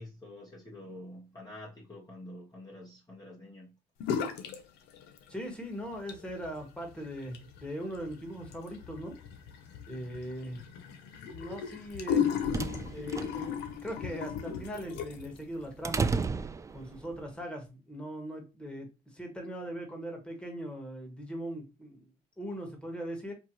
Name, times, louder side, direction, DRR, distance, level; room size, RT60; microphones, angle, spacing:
voice 1, 0.0-3.7, left 1 dB, 25° left, 1.4 m, -47 dB
sound 1, 4.0-4.6 4.9-5.5 5.9-15.4, left 7 dB, 90° left, 0.8 m, -36 dB
voice 2, 5.3-9.2 9.9-10.7 11.2-12.6 12.9-16.1 16.7-22.1 22.4-23.3, equal, 5° left, 1.7 m, -40 dB
sound 2, 11.9-17.2, right 4 dB, 20° right, 0.3 m, -35 dB
4.5 x 2.8 x 3.0 m
cardioid pair, 110°, 17 cm